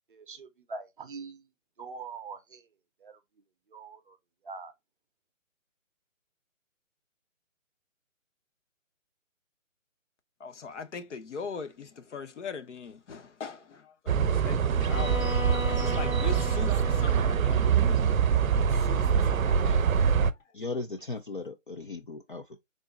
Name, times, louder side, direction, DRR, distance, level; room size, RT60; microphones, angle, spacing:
voice 1, 0.1-1.4 1.8-2.6 3.0-3.2 3.7-4.2 4.4-4.7, right 4 dB, 40° right, 0.6 m, -43 dB
voice 2, 10.4-15.4 15.7-20.2, left 5 dB, 60° left, 0.8 m, -41 dB
sound 1, 14.1-20.3, right 7 dB, 90° right, 0.6 m, -24 dB
Bowed string instrument, 14.8-18.8, left 3 dB, 75° left, 1.8 m, -38 dB
voice 3, 20.5-22.6, left 3 dB, 40° left, 0.4 m, -37 dB
3.7 x 2.1 x 3.8 m
figure-of-eight pair, 150°, 40 cm